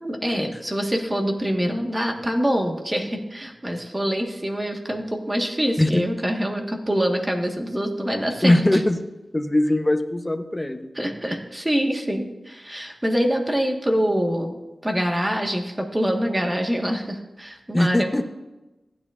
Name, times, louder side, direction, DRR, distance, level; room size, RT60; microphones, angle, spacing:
voice 1, 0.0-8.8 10.9-18.2, equal, 20° right, 2 dB, 1.5 m, -25 dB
voice 2, 8.4-9.0 9.3-10.9 17.7-18.2, left 1 dB, 20° left, 7 dB, 0.9 m, -21 dB
15.5 x 9.5 x 2.5 m, 1.0 s
wide cardioid pair, 65°, 0 cm